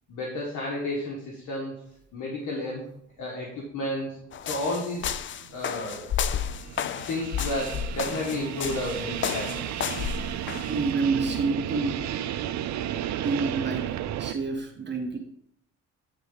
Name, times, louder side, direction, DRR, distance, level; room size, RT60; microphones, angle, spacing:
voice 1, 0.1-1.8 2.1-2.9 3.2-4.2 4.5-5.2 5.5-6.1 7.1-9.7, left 1 dB, 80° left, -2 dB, 1.5 m, -32 dB
sound 1, 4.0-4.1 4.7-14.3, right 11 dB, 65° right, 0.6 m, -33 dB
sound 2, 4.3-10.7, left 8 dB, 40° left, 0.4 m, -32 dB
voice 2, 10.7-12.0 13.2-13.9 14.2-15.2, right 4 dB, 35° right, 2 dB, 1.3 m, -28 dB
8.5 x 3.9 x 5.1 m, 0.71 s
cardioid pair, 90°, 30 cm